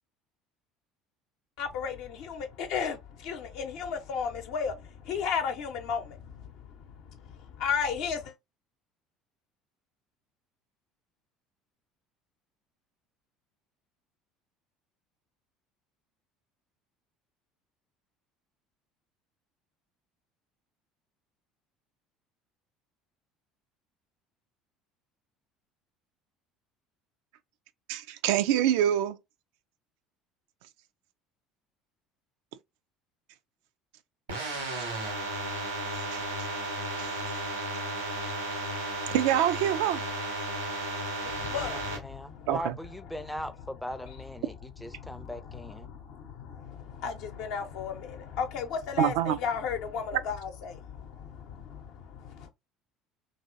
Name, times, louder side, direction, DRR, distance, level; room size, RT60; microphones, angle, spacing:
voice 1, 1.6-8.3 41.3-42.5 43.2-43.4 44.1-44.2 44.9-52.5, left 6 dB, 65° left, 0.7 m, -35 dB
voice 2, 27.9-29.2 36.1-36.2 37.0-37.1 39.1-40.0 42.5-42.7 49.0-49.4 50.1-50.2, right 11 dB, 70° right, 0.3 m, -25 dB
sound 1, 34.3-42.0, right 1 dB, 90° right, 1.2 m, -34 dB
voice 3, 41.6-45.9, equal, 5° left, 0.5 m, -40 dB
3.0 x 2.7 x 2.6 m
hypercardioid pair, 65°, 0 cm